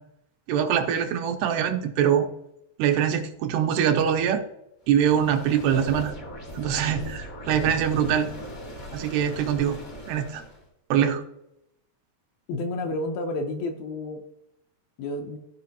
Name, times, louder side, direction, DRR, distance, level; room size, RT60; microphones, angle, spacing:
voice 1, 0.5-2.3 2.8-4.4 4.9-6.1 6.5-8.3 8.9-9.8 10.1-10.4 10.9-11.2, right 9 dB, 90° right, 5 dB, 2.8 m, -23 dB
sound 1, 4.9-10.6, left 1 dB, 55° left, 0.9 m, -38 dB
voice 2, 12.5-14.2 15.0-15.4, left 2 dB, 75° left, 3 dB, 2.3 m, -30 dB
15.5 x 5.1 x 2.8 m, 0.83 s
omnidirectional pair, 4.8 m